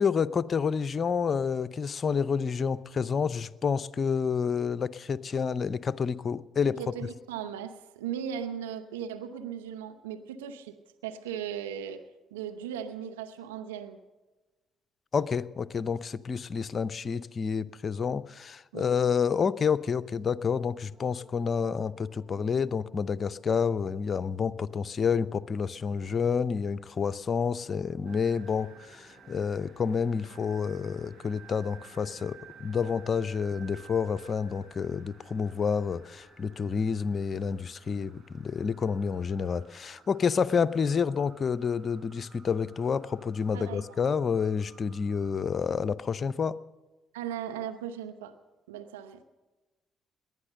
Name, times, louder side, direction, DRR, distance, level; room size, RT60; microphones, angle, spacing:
voice 1, 0.0-6.8 15.1-46.6, left 6 dB, 45° left, 17 dB, 0.6 m, -29 dB
voice 2, 6.8-10.7 11.0-12.0 12.3-14.0 18.7-18.9 43.5-44.0 47.1-48.3 48.7-49.2, right 8 dB, 90° right, 6 dB, 0.8 m, -37 dB
sound 1, 20.8-36.7, left 2 dB, 5° left, 4.6 m, -60 dB
sound 2, 28.1-45.5, right 7 dB, 55° right, 4.2 m, -55 dB
19.0 x 11.0 x 6.6 m, 1.2 s
hypercardioid pair, 50°, 0 cm